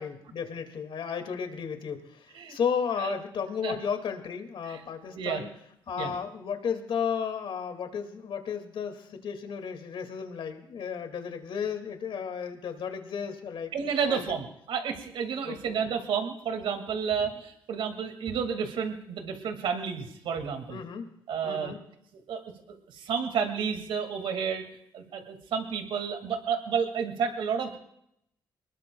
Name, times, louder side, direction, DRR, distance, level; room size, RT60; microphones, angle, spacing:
voice 1, 0.0-5.5 5.9-14.2 15.4-15.8 20.7-21.1 21.4-21.8, left 7 dB, 70° left, 6 dB, 2.2 m, -34 dB
voice 2, 13.7-20.8 21.3-21.7 22.3-22.4 22.7-24.6 24.9-27.8, right 6 dB, 80° right, 6 dB, 2.1 m, -31 dB
23.5 x 20.0 x 2.3 m, 0.75 s
cardioid pair, 65°, 9 cm